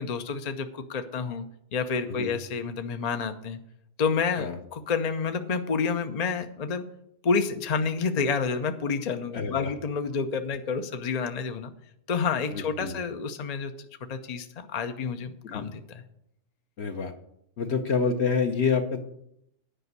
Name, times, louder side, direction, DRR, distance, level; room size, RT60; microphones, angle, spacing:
voice 1, 0.0-1.5 1.7-3.6 4.0-6.9 7.2-11.7 12.1-13.7 14.0-16.0, left 5 dB, 45° left, 7 dB, 0.6 m, -29 dB
voice 2, 9.3-9.7 12.5-13.0 15.4-15.7 16.8-17.1 17.6-19.0, left 5 dB, 60° left, 4 dB, 1.0 m, -27 dB
10.0 x 5.2 x 8.1 m, 0.75 s
omnidirectional pair, 1.3 m